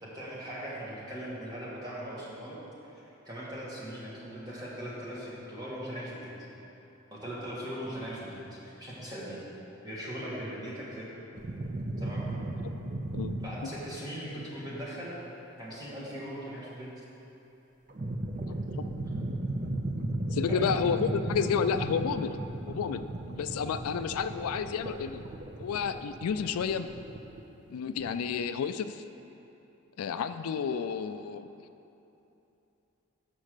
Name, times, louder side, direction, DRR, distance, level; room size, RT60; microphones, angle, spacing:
voice 1, 0.0-2.6 2.8-6.3 7.1-9.4 9.8-11.1 12.0-12.3 13.4-15.1 15.6-17.0 20.5-20.7, equal, 15° right, -7 dB, 1.4 m, -40 dB
sound 1, 11.3-13.5 17.9-27.5 28.0-28.3, right 1 dB, 35° right, 0.5 m, -35 dB
voice 2, 12.9-13.4 13.6-13.7 20.3-22.4 22.7-23.0 23.4-25.2 25.6-26.9 27.7-29.0 30.0-31.5, left 6 dB, 80° left, 11 dB, 0.3 m, -31 dB
6.1 x 5.3 x 6.5 m, 2.9 s
head